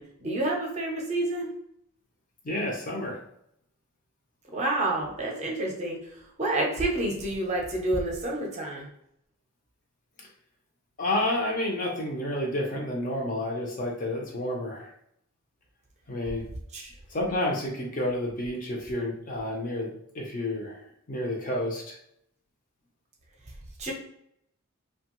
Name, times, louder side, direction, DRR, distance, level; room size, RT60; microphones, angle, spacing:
voice 1, 0.0-1.5 4.5-6.0 6.4-8.9 16.7-16.9 23.8-23.9, right 2 dB, 30° right, -1 dB, 0.6 m, -29 dB
voice 2, 2.4-3.2 11.0-14.9 16.1-16.4 17.1-20.8 21.1-22.0, left 1 dB, 35° left, -1 dB, 0.6 m, -30 dB
2.9 x 2.2 x 3.0 m, 0.74 s
head